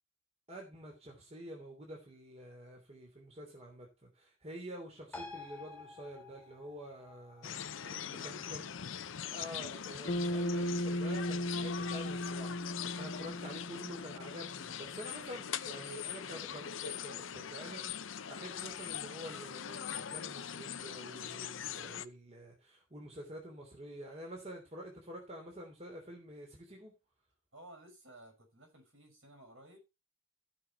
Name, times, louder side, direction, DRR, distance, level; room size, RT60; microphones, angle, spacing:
voice 1, 0.5-7.8 8.2-8.7 9.3-26.9, equal, 30° right, 3.0 m, -48 dB
sound 1, 5.1-12.1 12.4-12.5, left 3 dB, 10° left, 2.2 m, -53 dB
sound 2, 7.4-22.0, left 8 dB, 75° left, 0.7 m, -42 dB
voice 2, 7.8-8.6 27.5-29.8, right 1 dB, 70° right, 6.1 m, -56 dB
Bass guitar, 10.1-14.5, left 1 dB, 40° left, 0.7 m, -36 dB
15.0 x 5.9 x 4.5 m
head